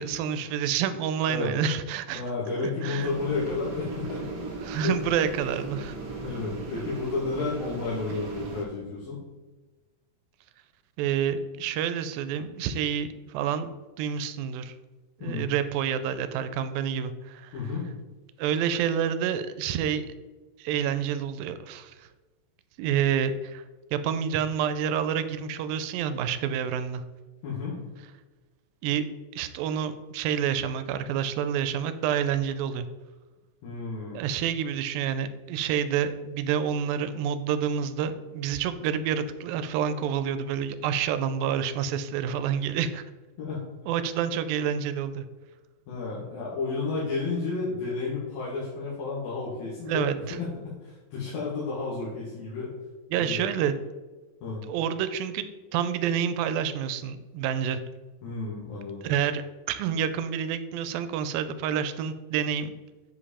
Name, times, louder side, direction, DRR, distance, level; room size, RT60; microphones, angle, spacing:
voice 1, 0.0-2.2 2.6-3.1 4.6-6.0 11.0-13.7 14.0-14.7 15.2-17.5 18.4-20.1 20.6-22.1 22.8-23.6 23.9-27.0 28.8-29.1 29.4-32.9 34.1-43.0 43.9-45.3 49.9-50.4 53.1-53.7 54.7-57.8 59.0-62.7, right 8 dB, 90° right, 11 dB, 2.3 m, -28 dB
voice 2, 2.1-4.3 4.8-4.9 6.2-9.2 15.2-15.5 17.5-17.9 27.4-27.8 33.6-34.2 43.4-43.7 45.9-52.7 53.1-53.4 54.4-54.6 58.2-59.1, left 4 dB, 90° left, -8 dB, 3.4 m, -32 dB
sound 1, 3.0-8.6, right 3 dB, 50° right, 1.5 m, -37 dB
7.7 x 5.1 x 4.2 m, 1.2 s
omnidirectional pair, 4.0 m